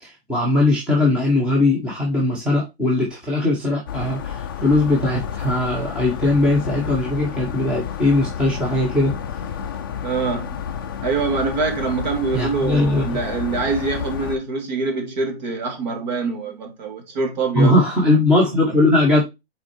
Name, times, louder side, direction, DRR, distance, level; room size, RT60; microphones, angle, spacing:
voice 1, 0.0-9.2 12.3-13.1 17.5-19.2, left 2 dB, 5° right, 1.0 m, -19 dB
sound 1, 3.9-14.4, left 8 dB, 25° left, 0.4 m, -30 dB
voice 2, 10.0-10.6 11.0-17.8, right 4 dB, 45° right, 2.2 m, -24 dB
6.0 x 4.4 x 4.3 m
hypercardioid pair, 170°, 31 cm